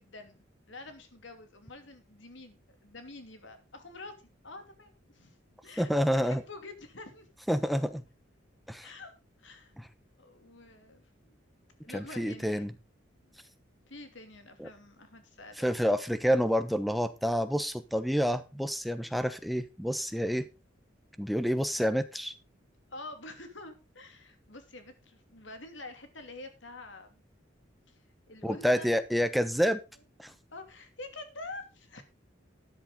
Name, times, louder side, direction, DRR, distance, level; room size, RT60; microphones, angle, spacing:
voice 1, 0.0-4.1 4.4-7.3 8.8-9.1 9.4-9.7 10.2-11.4 11.8-12.7 13.4-13.5 13.9-16.0 22.9-27.2 27.9-28.9 30.5-32.0, left 2 dB, 65° left, 7 dB, 2.8 m, -47 dB
voice 2, 5.8-6.4 7.5-8.0 8.7-8.9 9.8-9.9 11.9-12.7 14.6-14.7 15.6-20.5 21.2-22.3 28.4-29.8 30.2-30.3, equal, ahead, 10 dB, 1.0 m, -28 dB
13.0 x 10.5 x 3.8 m, 0.27 s
head